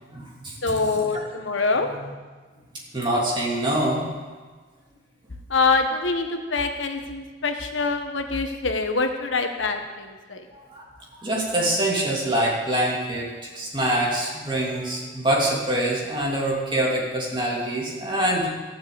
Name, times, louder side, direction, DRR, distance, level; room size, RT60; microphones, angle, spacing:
voice 1, 0.1-1.2 1.8-2.1 2.9-4.0 10.5-10.8 11.2-13.3 13.5-18.5, right 1 dB, 25° right, -3 dB, 2.9 m, -25 dB
voice 2, 0.6-1.9 5.5-10.4, left 4 dB, 85° left, 6 dB, 1.3 m, -25 dB
14.5 x 7.4 x 7.8 m, 1.4 s
head